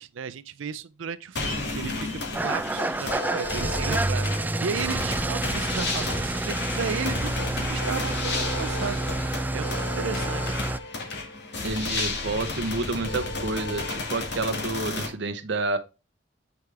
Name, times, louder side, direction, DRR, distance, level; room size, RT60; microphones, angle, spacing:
voice 1, 0.0-9.0 9.5-10.6, right 6 dB, 85° right, 0.5 m, -34 dB
sound 1, 1.4-15.1, left 3 dB, 60° left, 2.0 m, -32 dB
Engine starting / Idling, 2.3-10.8, right 2 dB, 10° right, 0.3 m, -28 dB
voice 2, 11.6-15.8, right 2 dB, 65° right, 0.9 m, -29 dB
8.2 x 4.8 x 3.3 m
head